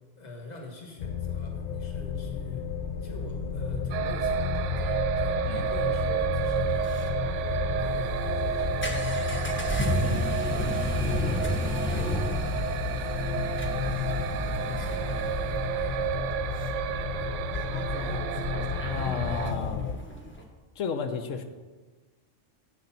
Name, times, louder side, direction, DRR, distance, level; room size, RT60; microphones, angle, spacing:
voice 1, 0.2-2.6 3.0-10.7 11.1-14.1 14.5-16.2, left 2 dB, 35° left, 1 dB, 1.5 m, -45 dB
sound 1, 1.0-20.0, left 7 dB, 60° left, 0.6 m, -32 dB
sound 2, 3.9-19.5, right 9 dB, 75° right, 0.9 m, -31 dB
sound 3, 6.6-20.4, equal, 10° left, 0.9 m, -34 dB
voice 2, 18.9-19.9 20.8-21.4, left 5 dB, 80° left, 8 dB, 1.1 m, -32 dB
8.8 x 6.6 x 5.7 m, 1.3 s
omnidirectional pair, 1.3 m